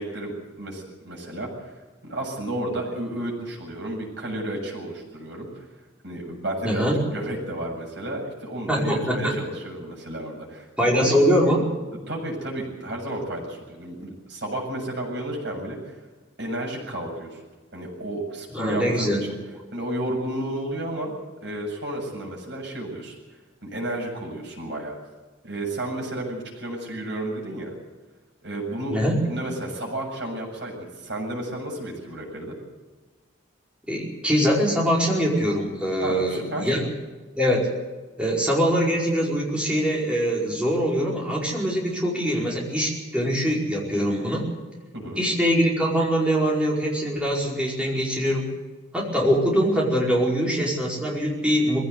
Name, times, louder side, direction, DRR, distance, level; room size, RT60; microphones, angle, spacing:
voice 1, 0.0-1.5 2.0-5.6 6.0-11.2 12.1-15.9 16.4-17.4 17.7-19.3 19.7-21.1 21.4-23.1 23.6-24.9 25.4-27.7 28.4-29.0 29.3-32.5 36.0-36.7 44.9-45.2, right 1 dB, 55° right, -1 dB, 7.6 m, -32 dB
voice 2, 6.6-7.0 8.7-9.3 10.8-11.8 18.5-19.2 28.9-29.2 33.9-36.9 37.3-37.7 38.2-44.5 45.2-48.5 48.9-51.9, equal, 5° right, -3 dB, 4.9 m, -23 dB
21.0 x 16.5 x 8.2 m, 1.3 s
head